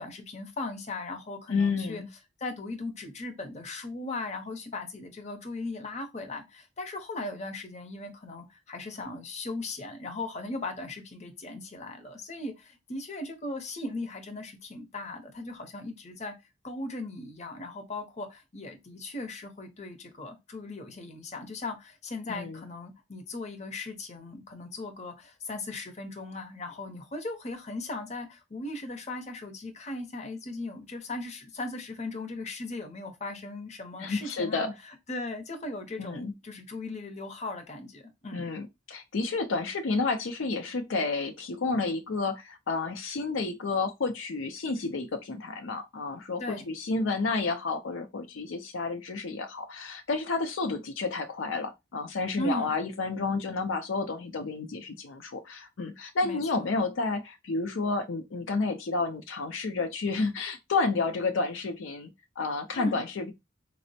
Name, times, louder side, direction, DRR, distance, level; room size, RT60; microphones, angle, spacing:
voice 1, 0.0-2.0 2.4-16.3 16.6-38.5 46.4-46.7 52.4-52.7 56.2-56.7 62.7-63.0, left 2 dB, 35° left, 0.7 m, -38 dB
voice 2, 1.5-2.1 22.3-22.6 34.0-34.7 36.0-36.3 38.3-63.3, left 3 dB, 80° left, 0.5 m, -30 dB
4.1 x 2.0 x 2.6 m
head